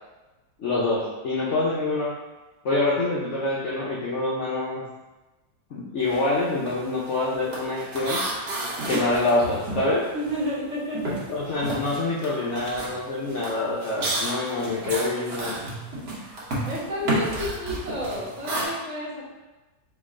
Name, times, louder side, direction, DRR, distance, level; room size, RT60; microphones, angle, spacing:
voice 1, 0.6-2.1 2.6-4.8 5.7-8.2 8.9-10.1 11.3-15.6, left 2 dB, 65° left, -6 dB, 0.7 m, -26 dB
sound 1, 6.0-6.3 6.6-10.6 10.9-18.6, right 1 dB, 70° right, 1.6 m, -31 dB
voice 2, 10.1-11.5 16.7-19.2, equal, 45° right, -7 dB, 1.4 m, -31 dB
4.0 x 3.1 x 3.6 m, 1.1 s
omnidirectional pair, 1.9 m